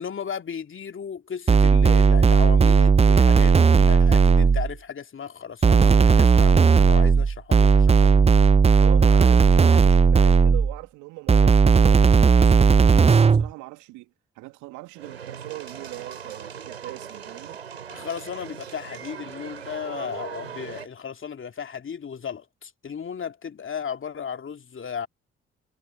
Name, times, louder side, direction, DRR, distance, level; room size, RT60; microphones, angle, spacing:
voice 1, 0.0-8.3 9.7-9.8 17.9-25.1, left 7 dB, 40° left, 2.5 m, -35 dB
sound 1, 1.5-4.7 5.6-10.8 11.3-13.5, right 5 dB, 20° right, 0.6 m, -16 dB
voice 2, 8.8-17.6, right 23 dB, 70° right, 2.7 m, -40 dB
sound 2, 15.0-20.9, right 8 dB, 90° right, 5.5 m, -39 dB
figure-of-eight pair, 40°, 31 cm